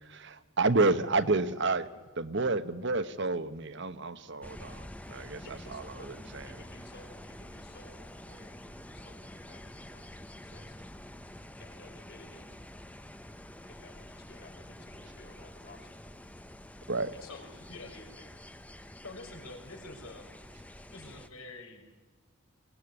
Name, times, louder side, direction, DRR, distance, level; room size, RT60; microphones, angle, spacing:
voice 1, 0.0-1.9 2.2-6.5 16.9-17.1, right 3 dB, 55° right, 11 dB, 1.1 m, -30 dB
sound 1, 4.4-21.3, left 1 dB, 5° left, 0.8 m, -48 dB
voice 2, 5.4-6.1 6.4-10.8 11.6-12.5 13.7-16.0 17.1-18.3, left 2 dB, 50° left, 4 dB, 3.8 m, -55 dB
voice 3, 17.2-18.0 19.0-20.3 20.9-21.8, left 2 dB, 85° left, 3 dB, 5.7 m, -47 dB
22.5 x 17.5 x 9.7 m, 1.3 s
head